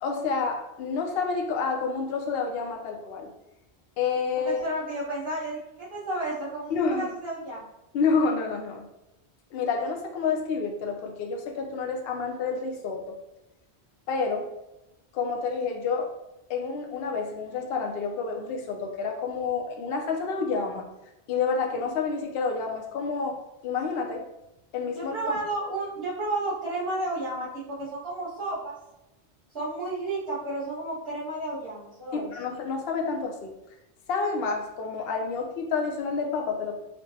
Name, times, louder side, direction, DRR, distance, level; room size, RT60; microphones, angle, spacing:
voice 1, 0.0-3.3 4.0-4.6 6.7-7.1 7.9-8.8 9.5-13.2 14.1-14.5 15.1-16.1 16.5-20.9 21.3-23.4 23.6-24.2 24.7-25.2 32.1-33.5 34.1-36.7, left 5 dB, 65° left, 2 dB, 0.8 m, -29 dB
voice 2, 4.6-7.6 24.9-28.7 29.5-32.3, right 2 dB, 60° right, -12 dB, 1.3 m, -32 dB
4.4 x 2.1 x 2.7 m, 0.93 s
omnidirectional pair, 1.1 m